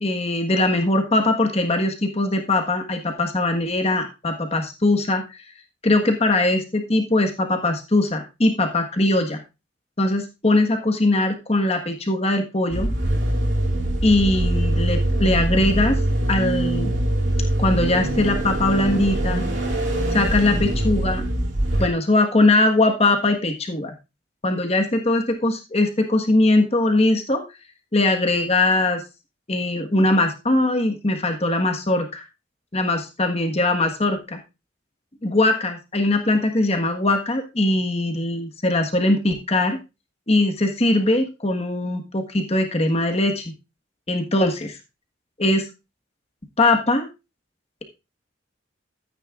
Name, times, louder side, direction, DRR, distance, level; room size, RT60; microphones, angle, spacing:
voice 1, 0.0-5.4 5.8-9.4 10.0-12.9 14.0-16.0 16.3-16.9 17.6-19.5 20.1-21.2 21.8-23.9 24.4-27.4 27.9-29.0 29.5-32.2 32.7-34.4 35.2-39.8 40.3-43.5 44.1-44.8 45.4-45.7 46.6-47.1, left 2 dB, 30° left, 4 dB, 1.5 m, -21 dB
sound 1, 12.7-21.9, right 1 dB, 65° right, 2.8 m, -23 dB
13.0 x 9.1 x 2.5 m, 0.27 s
head